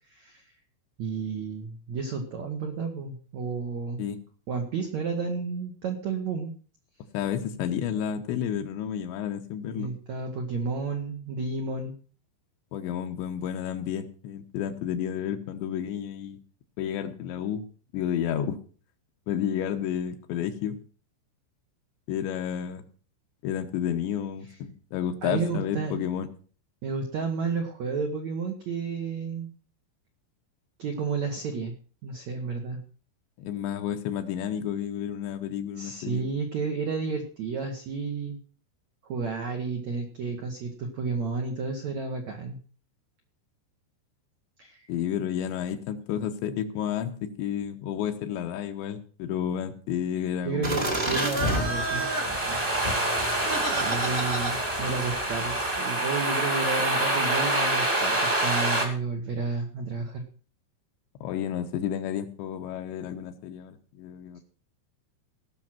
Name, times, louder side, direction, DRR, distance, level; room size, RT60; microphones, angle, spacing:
voice 1, 0.1-0.4 1.0-4.0 4.5-6.5 9.7-12.0 25.2-26.0 26.8-29.5 30.8-31.7 32.0-32.8 35.8-38.4 39.0-42.6 44.6-44.9 50.5-52.1 53.7-60.3, right 4 dB, 75° right, 3 dB, 1.6 m, -31 dB
voice 2, 7.1-9.9 12.7-16.4 16.8-17.7 17.9-18.6 19.3-20.8 22.1-22.8 23.4-26.3 33.4-36.2 44.9-50.8 61.2-64.4, left 9 dB, 80° left, 7 dB, 3.1 m, -31 dB
sound 1, 50.6-55.8, right 1 dB, 35° right, 0.8 m, -30 dB
sound 2, 51.2-58.8, right 1 dB, 15° right, 1.2 m, -27 dB
17.5 x 6.4 x 6.0 m, 0.42 s
omnidirectional pair, 5.4 m